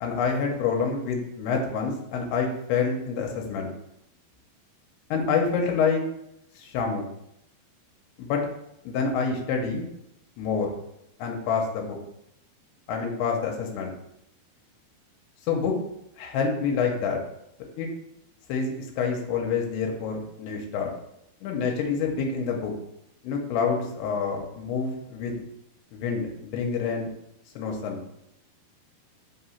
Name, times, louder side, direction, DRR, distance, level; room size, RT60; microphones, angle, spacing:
voice 1, 0.0-3.7 5.1-6.0 6.6-7.1 8.2-8.4 8.8-9.9 10.4-10.7 11.2-12.0 12.9-13.9 15.4-15.8 16.2-17.2 17.8-17.9 18.5-20.9 21.4-22.7 23.2-25.4 25.9-27.1 27.6-28.0, left 5 dB, 85° left, 1 dB, 2.8 m, -27 dB
5.9 x 2.9 x 5.6 m, 0.80 s
omnidirectional pair, 4.6 m